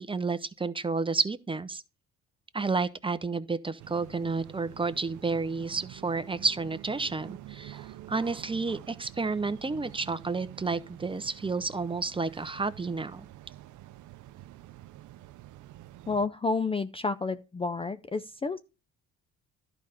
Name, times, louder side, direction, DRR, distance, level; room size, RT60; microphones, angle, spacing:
voice 1, 0.0-1.8 2.5-13.3, right 4 dB, 15° right, 0.7 m, -31 dB
sound 1, 3.8-16.3, right 14 dB, 75° right, 0.6 m, -48 dB
voice 2, 16.1-18.6, left 3 dB, 20° left, 0.4 m, -30 dB
11.5 x 5.0 x 5.7 m
cardioid pair, 90°, 30 cm